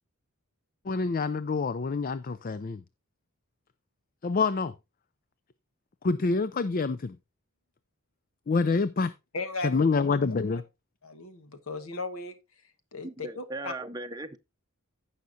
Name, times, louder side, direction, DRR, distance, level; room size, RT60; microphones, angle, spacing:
voice 1, 0.9-2.8 4.2-4.7 6.0-7.2 8.5-9.1 9.6-10.6, left 4 dB, 40° left, 0.4 m, -26 dB
voice 2, 9.3-9.8 11.0-12.4 12.9-13.7, left 3 dB, 70° left, 1.3 m, -36 dB
voice 3, 13.0-14.4, right 2 dB, 15° right, 0.7 m, -38 dB
16.0 x 5.7 x 2.6 m
head